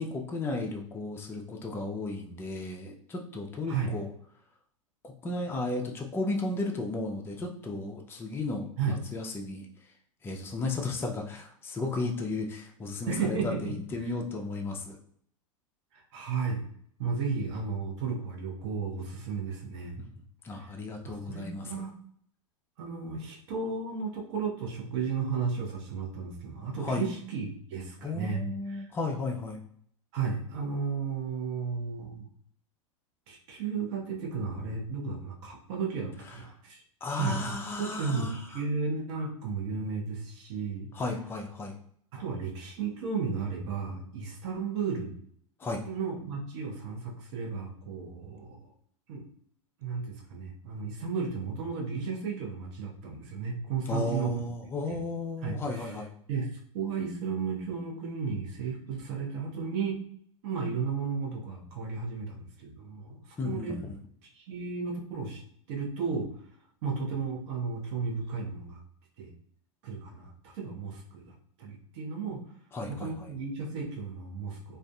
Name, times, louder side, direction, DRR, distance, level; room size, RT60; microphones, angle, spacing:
voice 1, 0.0-4.1 5.0-9.7 10.2-15.0 20.4-21.7 26.8-27.1 28.0-29.6 37.0-38.4 40.9-41.8 45.6-45.8 53.9-56.1 63.4-64.0 72.7-73.3, left 2 dB, 15° left, 1 dB, 0.4 m, -34 dB
voice 2, 3.7-4.0 8.8-9.0 13.1-13.7 15.9-16.6 17.0-20.0 20.5-20.7 21.0-21.9 22.8-28.9 30.1-32.3 33.3-36.8 37.1-40.9 42.1-45.1 45.8-48.7 49.1-49.2 49.8-54.4 54.9-55.0 55.4-56.0 56.3-60.0 60.4-63.8 64.3-65.4 65.7-66.3 66.8-68.8 69.2-69.3 69.8-72.4 72.9-74.8, right 5 dB, 60° right, -1 dB, 0.8 m, -34 dB
2.5 x 2.4 x 2.2 m, 0.64 s
hypercardioid pair, 95°, 17 cm